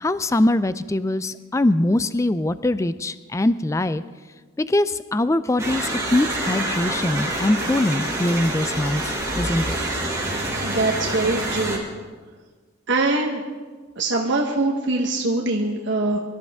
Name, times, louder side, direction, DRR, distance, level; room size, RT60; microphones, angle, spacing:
voice 1, 0.0-4.0 4.6-9.8, left 1 dB, 15° left, 14 dB, 0.3 m, -22 dB
sound 1, 5.6-11.8, right 1 dB, 15° right, 3.3 m, -27 dB
voice 2, 10.6-11.8 12.9-13.4 14.0-16.2, right 2 dB, 60° right, 1 dB, 1.1 m, -23 dB
23.5 x 13.0 x 3.6 m, 1.4 s
head